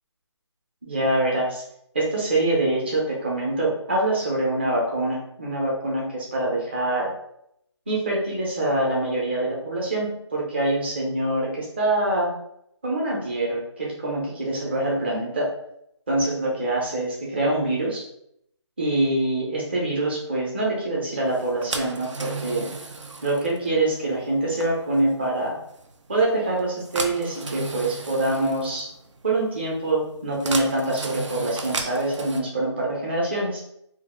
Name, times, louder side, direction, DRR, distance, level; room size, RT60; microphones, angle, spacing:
voice 1, 0.8-1.6 1.9-7.1 7.9-12.3 12.8-15.5 16.1-18.0 18.8-22.7 23.2-25.6 26.1-28.9 29.2-33.6, right 2 dB, 20° right, -3 dB, 0.6 m, -25 dB
sound 1, 21.3-32.4, right 3 dB, 90° right, 0.5 m, -36 dB
2.7 x 2.4 x 3.6 m, 0.75 s
figure-of-eight pair, 170°, 15 cm